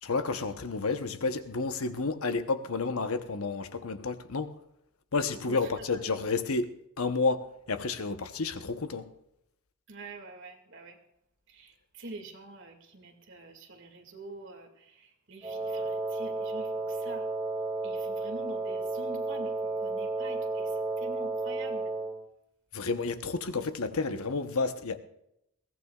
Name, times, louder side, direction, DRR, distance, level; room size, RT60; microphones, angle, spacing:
voice 1, 0.0-4.5 5.1-9.1 22.7-25.0, left 4 dB, 85° left, 1.0 m, -31 dB
voice 2, 5.5-6.0 9.9-11.0 11.5-17.3 17.8-21.9, right 2 dB, 60° right, 2.2 m, -46 dB
Wind instrument woodwind instrument, 15.4-22.2, right 3 dB, 15° right, 3.0 m, -32 dB
21.5 x 17.0 x 2.4 m
head